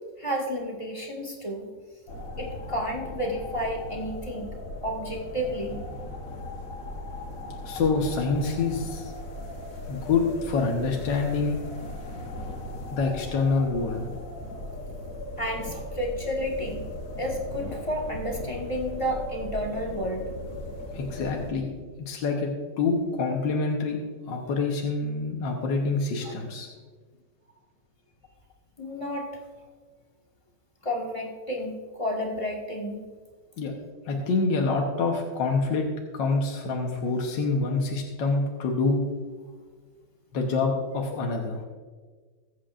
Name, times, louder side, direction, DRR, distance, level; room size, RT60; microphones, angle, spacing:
voice 1, 0.2-1.7 2.4-4.5 4.8-5.8 15.4-16.9 17.2-20.2 26.2-26.3 28.8-29.3 30.8-33.0, equal, 20° left, -1 dB, 1.5 m, -31 dB
sound 1, 2.1-21.5, left 1 dB, 50° left, 1.5 m, -38 dB
voice 2, 7.7-9.1 9.9-11.6 12.9-14.1 20.9-21.7 22.0-22.5 22.8-24.0 24.3-26.7 33.6-33.7 34.1-35.9 36.1-39.0 40.3-41.6, left 4 dB, 75° left, 1 dB, 1.8 m, -26 dB
22.0 x 8.2 x 2.5 m, 1.5 s
omnidirectional pair, 2.0 m